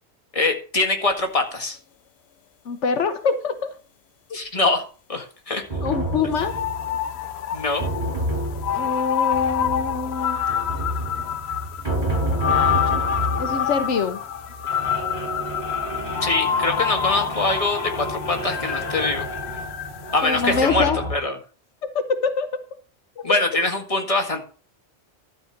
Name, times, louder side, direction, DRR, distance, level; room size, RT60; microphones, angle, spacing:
voice 1, 0.3-1.8 4.3-4.8 5.1-5.6 7.5-7.8 16.2-19.3 20.1-21.4 23.2-24.4, left 2 dB, 30° left, 3 dB, 2.0 m, -23 dB
voice 2, 2.7-3.7 5.8-6.5 8.7-10.4 13.4-14.2 20.2-21.0 21.9-22.5 23.2-23.3, left 5 dB, 80° left, 8 dB, 1.3 m, -24 dB
sound 1, 5.7-21.1, right 1 dB, 35° right, 5.0 m, -30 dB
sound 2, 6.4-20.3 20.6-20.7, left 8 dB, 65° left, 0.9 m, -27 dB
12.5 x 4.8 x 7.3 m, 0.38 s
omnidirectional pair, 1.2 m